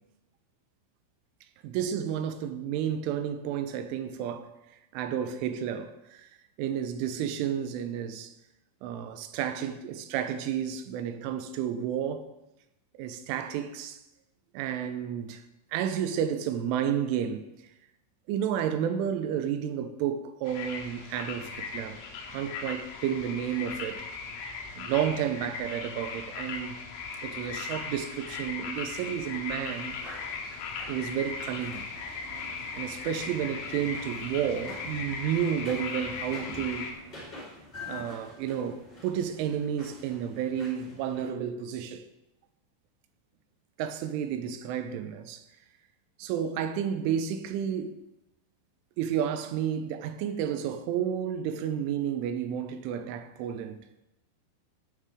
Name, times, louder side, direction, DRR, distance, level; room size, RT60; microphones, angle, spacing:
voice 1, 1.6-4.5 4.9-6.3 6.6-8.3 8.8-12.3 13.0-14.0 14.5-15.4 15.7-17.5 18.3-22.0 22.3-24.0 24.8-26.8 27.2-30.0 30.9-31.8 32.7-37.0 37.9-42.1 43.8-45.4 46.2-48.0 49.0-53.8, right 9 dB, 80° right, 3.1 m, -31 dB
sound 1, 20.5-36.9, left 5 dB, 80° left, 3.5 m, -38 dB
sound 2, 29.7-41.3, left 2 dB, 15° left, 2.5 m, -48 dB
sound 3, 31.5-37.3, right 6 dB, 65° right, 3.2 m, -52 dB
15.0 x 7.4 x 3.6 m
omnidirectional pair, 5.7 m